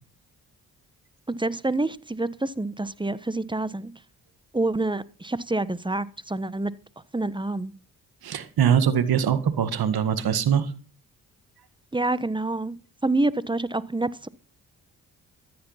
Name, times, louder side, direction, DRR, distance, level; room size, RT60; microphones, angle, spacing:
voice 1, 1.3-3.9 4.5-6.7 7.1-7.7 11.9-12.8 13.0-14.3, right 2 dB, 10° right, 1.2 m, -27 dB
voice 2, 8.2-10.7, right 8 dB, 70° right, 2.0 m, -22 dB
14.0 x 9.8 x 5.8 m
supercardioid pair, 55°, 38 cm